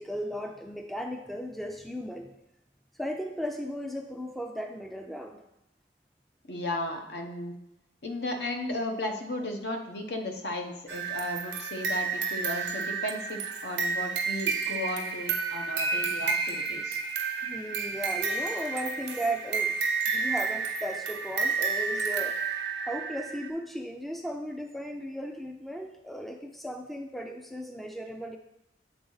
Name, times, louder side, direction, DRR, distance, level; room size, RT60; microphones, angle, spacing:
voice 1, 0.0-2.3 3.0-5.4 17.4-19.8 20.1-22.4 22.9-28.4, equal, ahead, 4 dB, 0.4 m, -36 dB
voice 2, 6.5-7.5 8.0-17.0, left 1 dB, 65° left, 4 dB, 0.9 m, -35 dB
sound 1, 10.9-23.5, right 5 dB, 90° right, 0.9 m, -31 dB
8.0 x 4.0 x 3.9 m, 0.84 s
head